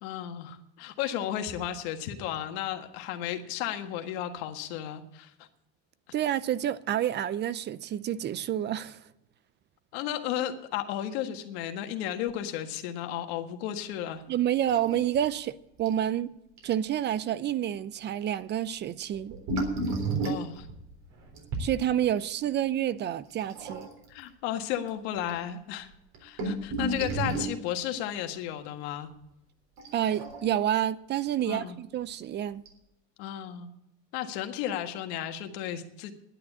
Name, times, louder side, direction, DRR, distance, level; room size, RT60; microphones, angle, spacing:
voice 1, 0.0-5.5 9.9-14.2 20.2-20.7 24.1-25.9 26.2-29.1 31.5-31.8 33.2-33.7 34.1-36.1, left 11 dB, 90° left, 1.6 m, -34 dB
voice 2, 6.1-9.0 14.3-16.3 16.6-19.4 21.6-23.9 26.4-26.7 29.9-32.6, right 11 dB, 35° right, 0.5 m, -29 dB
sound 1, 14.6-15.2 15.5-15.6 15.9-16.1 16.6-16.7 19.1-21.7 23.4-24.1 24.9-25.0 25.2-25.3 25.9-27.6 29.8-30.7 32.0-32.1 32.7-32.8, right 2 dB, 60° right, 3.7 m, -32 dB
11.0 x 9.7 x 8.2 m
cardioid pair, 135°, 30 cm